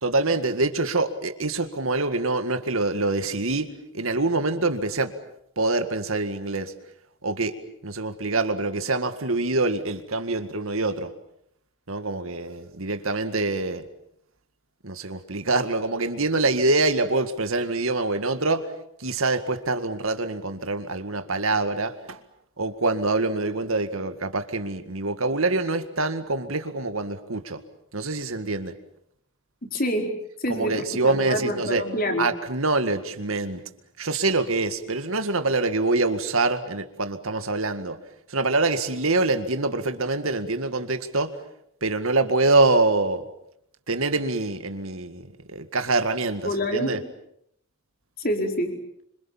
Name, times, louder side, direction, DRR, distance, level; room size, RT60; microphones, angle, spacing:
voice 1, 0.0-5.1 5.6-6.7 7.2-7.6 7.8-11.1 11.9-13.8 14.8-18.7 19.0-22.2 22.6-27.6 27.9-28.7 30.5-31.8 32.2-33.6 34.0-38.0 38.3-41.3 41.8-43.2 43.9-47.0, right 3 dB, 75° right, 9 dB, 2.0 m, -25 dB
voice 2, 29.7-30.1 30.4-30.7 31.0-32.3 46.4-46.9 48.2-48.7, equal, 40° left, 4 dB, 4.6 m, -26 dB
27.0 x 26.0 x 7.4 m, 0.73 s
head